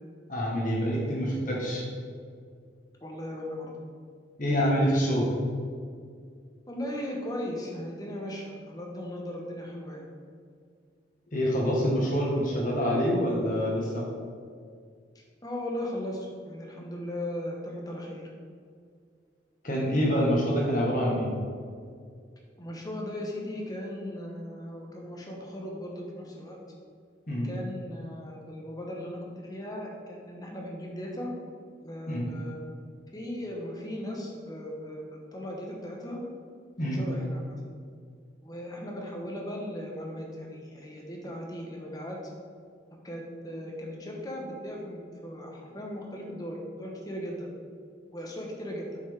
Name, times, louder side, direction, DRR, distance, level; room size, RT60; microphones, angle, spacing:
voice 1, 0.3-1.8 4.4-5.3 11.3-14.0 19.6-21.3 27.3-27.5 32.1-32.3 36.8-37.0, equal, 45° left, -3 dB, 1.5 m, -26 dB
voice 2, 3.0-3.8 6.7-10.1 15.1-18.3 22.6-26.6 27.4-31.3 31.8-32.6 33.1-36.2 36.8-37.6 38.4-42.2 43.0-47.5 48.1-49.0, left 1 dB, 20° left, -1 dB, 1.0 m, -37 dB
7.0 x 5.7 x 3.5 m, 2.2 s
head